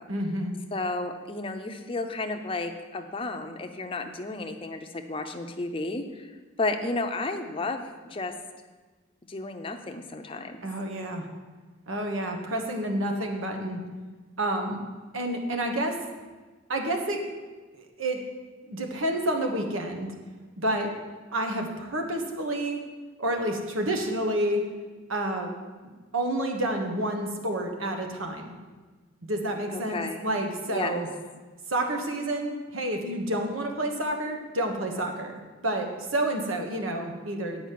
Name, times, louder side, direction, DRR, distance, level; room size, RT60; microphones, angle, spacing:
voice 1, 0.1-0.5 10.6-11.3 11.9-13.8 14.4-14.8 15.1-15.9 16.7-17.2 17.7-18.2 18.6-20.1 20.6-20.9 21.3-22.8 23.2-24.6 25.1-25.5 26.1-28.5 29.2-31.1 31.7-37.7, right 1 dB, 75° right, 3 dB, 1.3 m, -29 dB
voice 2, 0.7-8.3 9.3-10.6 29.7-30.2 30.7-31.0, left 2 dB, 25° left, 6 dB, 0.6 m, -32 dB
8.5 x 5.0 x 7.6 m, 1.3 s
head